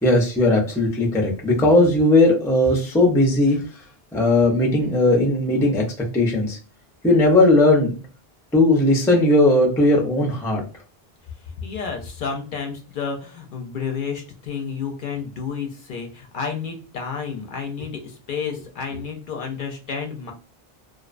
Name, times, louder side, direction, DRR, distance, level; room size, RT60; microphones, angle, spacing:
voice 1, 0.0-3.6 4.1-5.8 6.1-6.6 7.0-7.9 8.5-10.6 18.9-19.0, left 2 dB, 5° left, 0 dB, 0.3 m, -17 dB
voice 2, 11.6-20.3, left 6 dB, 60° left, 3 dB, 0.6 m, -30 dB
2.5 x 2.1 x 2.4 m, 0.36 s
omnidirectional pair, 1.0 m